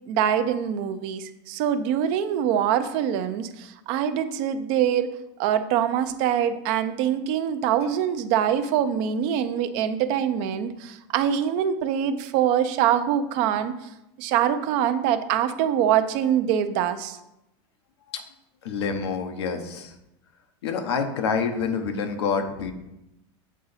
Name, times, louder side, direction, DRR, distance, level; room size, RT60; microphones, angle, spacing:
voice 1, 0.1-5.1 5.4-13.7 14.2-17.2, right 9 dB, 55° right, 10 dB, 0.6 m, -24 dB
voice 2, 18.6-19.9 20.6-22.7, left 5 dB, 90° left, 5 dB, 1.0 m, -27 dB
7.4 x 3.9 x 4.1 m, 0.89 s
supercardioid pair, 135°, 13 cm